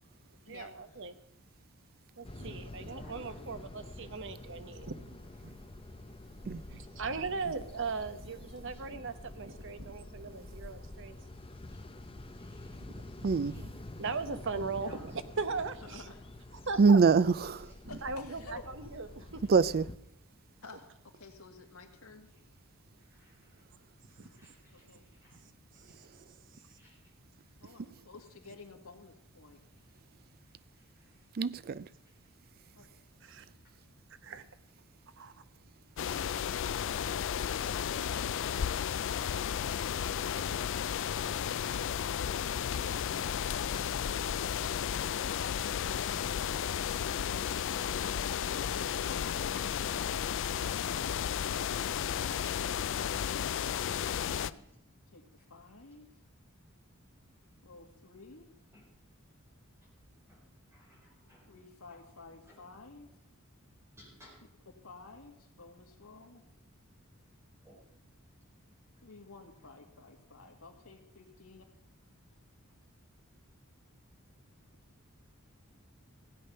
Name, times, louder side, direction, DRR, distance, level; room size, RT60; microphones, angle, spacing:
voice 1, 0.5-1.1 2.2-5.1 5.4-5.6 6.7-11.3 12.8-13.7 14.0-16.1 16.5-17.0 17.8-19.4 24.2-24.4 25.4-25.9 33.2-33.4 34.2-34.4 35.2-35.3, right 4 dB, 60° right, 0.9 m, -39 dB
sound 1, 2.2-20.0, left 2 dB, 25° left, 0.7 m, -48 dB
voice 2, 2.7-3.6 5.4-5.5 8.7-8.8 11.7-11.8 12.4-12.8 13.4-13.6 14.8-15.2 17.4-17.8 19.4-19.5 22.3-22.4 23.0-23.5 24.1-24.9 25.1-25.4 25.9-26.0 26.5-27.0 27.6-27.8 30.4-31.2 32.0-32.5 54.3-54.7 58.7-59.0 59.8-59.9 60.2-60.4 60.7-61.6 61.9-62.0 62.4-62.6 64.0-64.4 67.6-67.7 68.9-69.0, equal, 10° right, 4.7 m, -60 dB
voice 3, 15.9-16.3 17.9-18.7 20.6-22.3 24.7-25.1 27.6-29.6 32.7-33.5 55.1-56.1 57.6-58.5 61.2-63.1 64.8-66.4 69.0-71.8, left 3 dB, 85° left, 1.9 m, -53 dB
voice 4, 16.8-17.7 19.5-19.9 31.3-31.8, right 5 dB, 45° right, 0.4 m, -24 dB
sound 2, 36.0-54.5, left 8 dB, 60° left, 0.4 m, -33 dB
16.0 x 8.7 x 5.6 m
head